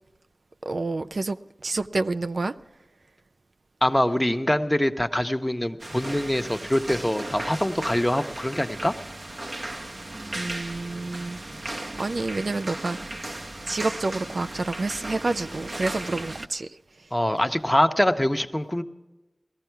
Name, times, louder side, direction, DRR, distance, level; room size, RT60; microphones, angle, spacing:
voice 1, 0.6-2.6 10.3-11.4 12.0-13.2 13.7-17.1, right 3 dB, 75° right, 10 dB, 0.4 m, -29 dB
voice 2, 3.8-8.9 17.1-18.8, left 1 dB, 15° left, 7 dB, 0.9 m, -24 dB
sound 1, 5.8-16.5, right 1 dB, 60° right, 0.9 m, -36 dB
18.0 x 13.5 x 4.6 m, 1.0 s
wide cardioid pair, 50°, 0 cm